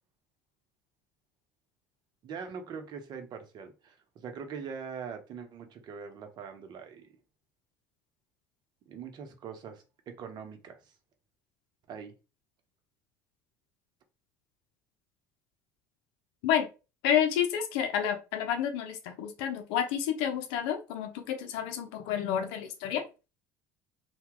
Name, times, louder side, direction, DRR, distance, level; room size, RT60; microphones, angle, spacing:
voice 1, 2.2-3.9 4.2-7.1 8.9-10.8 11.9-12.1, right 6 dB, 50° right, 0.9 m, -42 dB
voice 2, 17.0-23.0, left 9 dB, 70° left, 0.6 m, -29 dB
2.8 x 2.3 x 3.6 m
hypercardioid pair, 75°, 9 cm